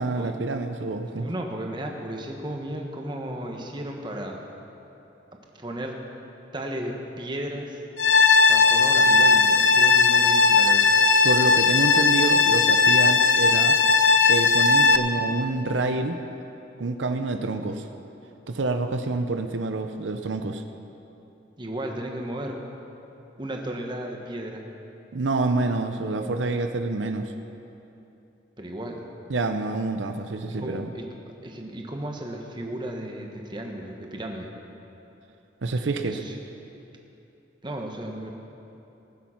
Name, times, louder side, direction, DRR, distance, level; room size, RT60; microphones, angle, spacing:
voice 1, 0.0-1.3 11.2-13.8 14.3-16.2 16.8-17.9 18.5-20.6 25.1-27.3 29.3-30.9 35.6-36.2, right 3 dB, 90° right, 7 dB, 0.6 m, -27 dB
voice 2, 1.2-4.4 5.5-6.0 6.5-7.8 8.5-10.9 21.6-22.6 23.4-24.6 28.6-29.0 30.5-31.1 31.4-34.5 36.0-36.4 37.6-38.3, right 1 dB, 25° right, 1 dB, 1.2 m, -34 dB
sound 1, 8.0-15.0, left 4 dB, 70° left, 0.6 m, -18 dB
19.0 x 7.4 x 5.8 m, 2.9 s
head